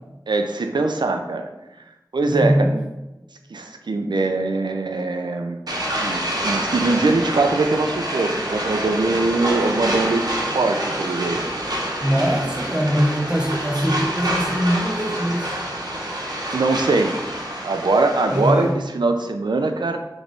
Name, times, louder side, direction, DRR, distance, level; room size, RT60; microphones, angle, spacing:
voice 1, 0.3-1.5 2.1-2.7 3.5-5.6 6.0-10.3 10.5-11.4 16.5-17.2 17.6-20.0, right 3 dB, 90° right, 6 dB, 0.4 m, -22 dB
voice 2, 2.3-2.8 12.0-15.6 18.3-18.7, equal, 10° right, 1 dB, 0.7 m, -22 dB
sound 1, 5.7-18.7, right 1 dB, 60° right, 0.8 m, -27 dB
3.4 x 3.0 x 3.8 m, 1.0 s
wide cardioid pair, 40°, 7 cm